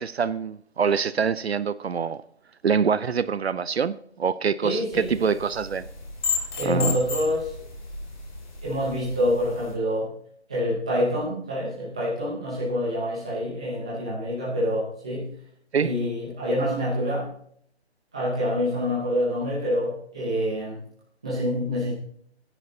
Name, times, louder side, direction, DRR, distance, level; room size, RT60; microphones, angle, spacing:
voice 1, 0.0-2.2 2.6-5.8 6.6-7.0 15.7-15.9, right 6 dB, 65° right, 0.6 m, -25 dB
voice 2, 4.6-5.3 6.6-7.5 8.6-10.1 10.5-15.3 15.8-17.3 18.1-20.8 21.2-21.9, equal, 5° right, 0.8 m, -26 dB
sound 1, 4.9-9.7, left 4 dB, 45° left, 2.4 m, -34 dB
16.5 x 10.0 x 2.8 m
hypercardioid pair, 170°, 34 cm